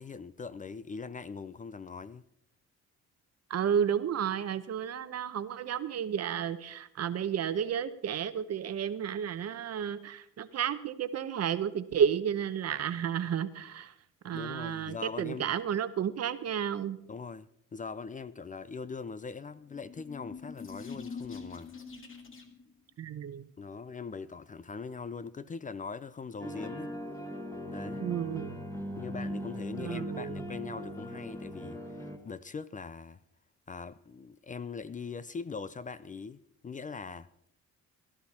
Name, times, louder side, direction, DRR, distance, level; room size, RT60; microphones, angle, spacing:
voice 1, 0.0-2.2 14.3-15.5 17.1-21.7 23.6-26.9 27.7-28.0 29.0-33.2 33.7-37.3, left 5 dB, 25° left, 0.5 m, -41 dB
voice 2, 3.5-13.9 14.2-17.0 23.0-23.5 28.0-28.6 29.8-30.5, right 8 dB, 55° right, 1.0 m, -32 dB
sound 1, 19.6-22.7, left 5 dB, 45° left, 2.0 m, -44 dB
sound 2, 26.4-32.2, equal, 10° left, 1.8 m, -39 dB
17.5 x 11.5 x 4.3 m
cardioid pair, 90°, 30 cm